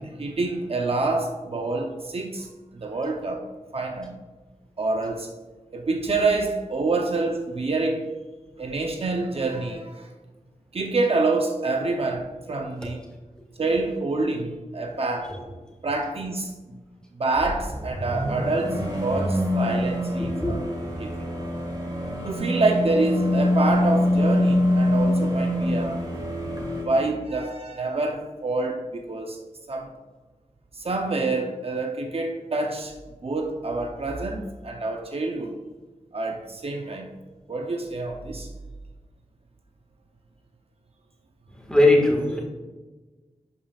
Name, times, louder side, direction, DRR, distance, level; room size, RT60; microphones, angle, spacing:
voice 1, 0.0-2.5 2.7-3.4 3.7-4.2 4.8-5.3 5.7-8.0 8.6-10.1 10.7-13.0 13.6-15.3 15.8-16.6 17.2-20.6 21.0-21.3 22.2-26.0 26.8-29.4 29.7-29.9 30.7-32.9 33.2-35.5 36.1-37.1 37.5-38.5, right 3 dB, 50° right, 3 dB, 0.7 m, -27 dB
sound 1, 17.3-26.8, left 1 dB, 30° right, 1.7 m, -25 dB
voice 2, 41.5-42.4, left 2 dB, 5° left, -1 dB, 1.6 m, -19 dB
11.0 x 5.1 x 2.4 m, 1.3 s
wide cardioid pair, 85°, 13 cm